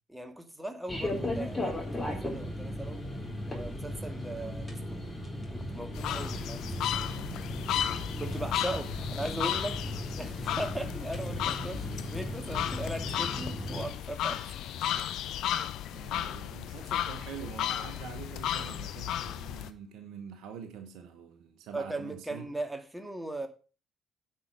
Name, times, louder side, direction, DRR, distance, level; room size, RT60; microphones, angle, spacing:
voice 1, 0.1-3.0 3.4-5.1 5.5-6.6 8.2-9.8 10.2-14.5 21.7-23.5, right 1 dB, 5° right, 2.0 m, -39 dB
sound 1, 0.9-13.9, left 1 dB, 15° left, 3.9 m, -36 dB
sound 2, 5.9-19.7, left 11 dB, 60° left, 0.7 m, -34 dB
voice 2, 8.2-8.8 15.9-22.4, right 7 dB, 65° right, 1.2 m, -45 dB
9.5 x 5.8 x 6.5 m
figure-of-eight pair, 45°, 0 cm